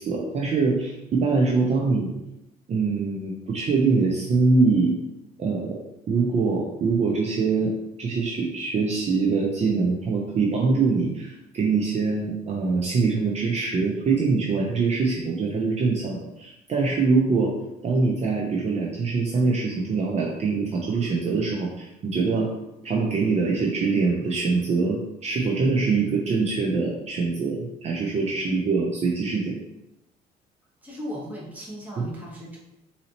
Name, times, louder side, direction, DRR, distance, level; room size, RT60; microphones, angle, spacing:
voice 1, 0.0-2.1 2.7-4.9 5.4-5.8 6.1-17.5 17.8-22.5 22.8-29.6 32.0-32.1, right 4 dB, 40° right, -1 dB, 0.6 m, -24 dB
voice 2, 30.8-32.6, equal, 10° right, -5 dB, 1.2 m, -37 dB
4.0 x 2.8 x 2.9 m, 0.89 s
cardioid pair, 110°, 17 cm